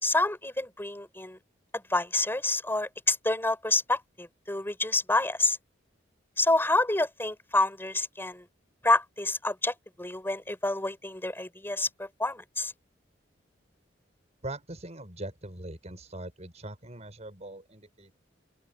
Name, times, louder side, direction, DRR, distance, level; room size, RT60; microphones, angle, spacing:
voice 1, 0.0-1.4 1.7-5.6 6.4-8.5 8.8-12.7, left 2 dB, 10° left, 4.8 m, -28 dB
voice 2, 14.4-18.2, right 1 dB, 40° right, 6.1 m, -41 dB
open air
head